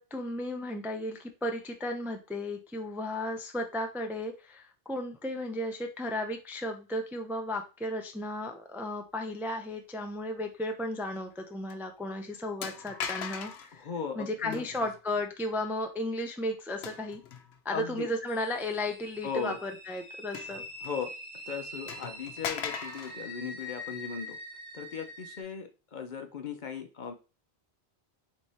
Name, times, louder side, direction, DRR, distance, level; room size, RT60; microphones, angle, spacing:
voice 1, 0.0-13.9 14.2-17.2 17.6-20.6, left 1 dB, 5° right, 4 dB, 0.4 m, -34 dB
sound 1, 11.2-11.4 11.7-11.8 12.6-13.7 14.5-15.0 16.8-17.6 18.2-18.3 20.3-21.1 21.4-21.5 21.9-23.2, left 7 dB, 85° left, 0.9 m, -39 dB
voice 2, 13.7-14.6 17.7-18.1 19.2-19.6 20.8-21.1 21.5-24.4 24.7-27.1, left 6 dB, 55° left, 6 dB, 0.7 m, -37 dB
sound 2, 18.3-25.4, equal, 35° right, 1.3 m, -44 dB
3.5 x 3.2 x 4.1 m, 0.31 s
omnidirectional pair, 1.1 m